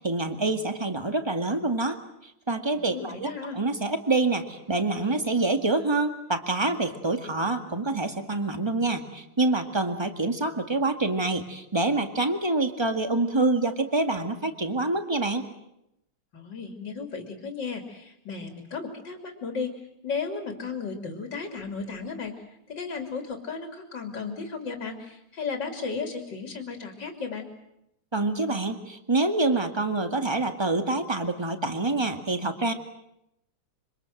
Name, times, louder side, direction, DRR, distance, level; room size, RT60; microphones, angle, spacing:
voice 1, 0.0-2.0 2.5-15.4 28.1-32.7, right 2 dB, 10° right, 7 dB, 1.8 m, -26 dB
voice 2, 2.7-3.6 16.3-19.7 20.0-27.5, left 5 dB, 55° left, 4 dB, 3.5 m, -35 dB
26.5 x 25.5 x 7.8 m, 0.82 s
omnidirectional pair, 2.4 m